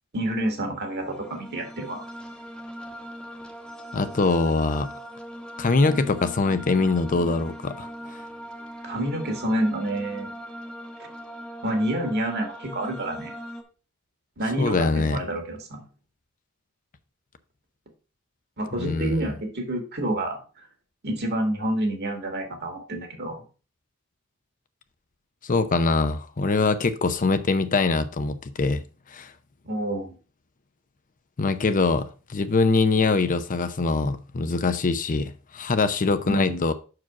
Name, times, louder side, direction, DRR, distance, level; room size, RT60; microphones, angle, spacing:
voice 1, 0.1-2.1 8.8-10.3 11.0-11.1 11.6-13.3 14.4-15.8 18.6-20.7 21.0-23.4 29.6-30.1 36.2-36.6, right 1 dB, 50° right, 2.0 m, -28 dB
sound 1, 0.7-13.6, equal, 5° left, 1.1 m, -40 dB
voice 2, 3.9-4.9 5.6-8.2 14.6-15.2 18.8-19.3 25.4-28.8 29.1-29.3 31.4-36.7, left 3 dB, 40° left, 0.6 m, -23 dB
6.1 x 4.8 x 5.9 m
head